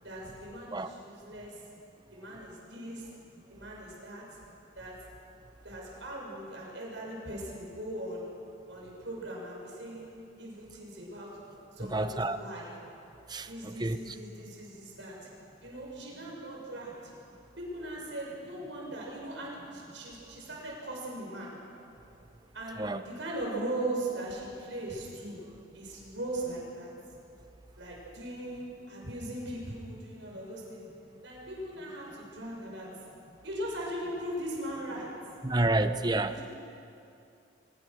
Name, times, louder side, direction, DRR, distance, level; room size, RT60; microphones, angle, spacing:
voice 1, 0.0-1.6 2.1-3.1 3.5-4.2 4.8-4.9 5.6-8.3 8.7-11.4 11.7-12.7 13.5-15.3 15.6-17.1 17.6-21.5 22.5-25.4 25.7-26.9 27.8-30.8 31.2-32.9 33.4-35.1 36.2-36.4, right 1 dB, 75° right, -3 dB, 6.9 m, -39 dB
voice 2, 11.8-12.4 13.3-14.2 22.8-23.0 35.4-36.4, right 2 dB, 20° right, 10 dB, 0.8 m, -29 dB
24.0 x 21.5 x 6.4 m, 2.7 s
head